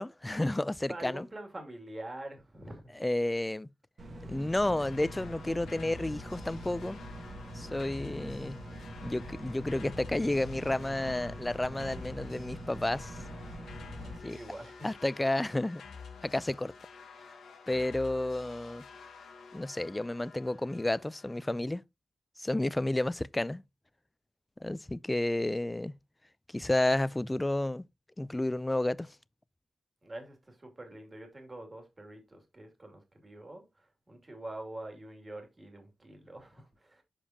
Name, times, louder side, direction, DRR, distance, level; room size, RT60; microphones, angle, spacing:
voice 1, 0.0-1.3 3.0-3.7 4.3-7.0 7.5-8.6 9.0-13.1 14.2-14.4 14.8-15.8 16.2-16.7 17.7-18.8 19.5-21.8 22.4-23.6 24.6-25.9 26.5-27.8 28.2-29.1, left 1 dB, 20° left, 0.3 m, -31 dB
voice 2, 0.9-2.8 14.0-14.9 30.0-37.0, right 1 dB, 35° right, 2.5 m, -45 dB
sound 1, 4.0-14.2, right 1 dB, 60° right, 1.5 m, -44 dB
sound 2, 4.7-21.6, left 5 dB, 85° left, 1.1 m, -50 dB
7.0 x 4.9 x 2.8 m
supercardioid pair, 40°, 0 cm